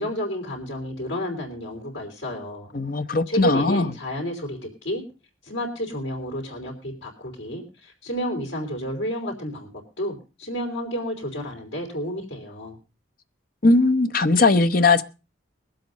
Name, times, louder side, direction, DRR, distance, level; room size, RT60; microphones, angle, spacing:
voice 1, 0.0-2.7 3.3-5.0 5.4-9.7 10.0-12.8, equal, 60° left, 3.6 m, -30 dB
voice 2, 2.7-3.9 13.6-15.0, left 3 dB, 45° left, 0.8 m, -19 dB
21.5 x 7.9 x 5.3 m
head